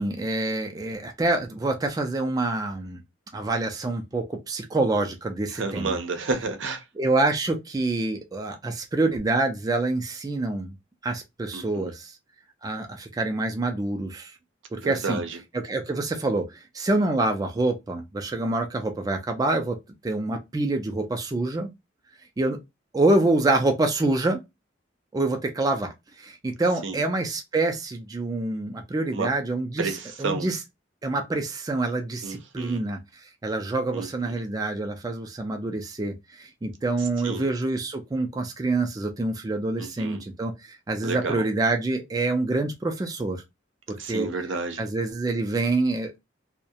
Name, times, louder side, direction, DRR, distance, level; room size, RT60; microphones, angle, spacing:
voice 1, 0.0-3.0 3.3-6.0 7.0-10.7 11.0-12.1 12.6-14.3 14.7-15.2 15.5-19.8 20.0-21.7 22.4-22.6 22.9-24.4 25.1-25.9 26.2-30.6 31.0-33.0 33.4-43.4 43.9-44.3 44.8-46.2, right 2 dB, 20° right, 0.3 m, -26 dB
voice 2, 5.5-6.8 11.5-11.9 14.8-15.4 26.8-27.0 29.1-29.3 29.8-30.5 32.2-32.8 33.9-34.4 37.0-37.5 39.8-40.2 41.0-41.4 44.0-44.8, right 3 dB, 75° right, 0.6 m, -31 dB
2.3 x 2.0 x 2.7 m
head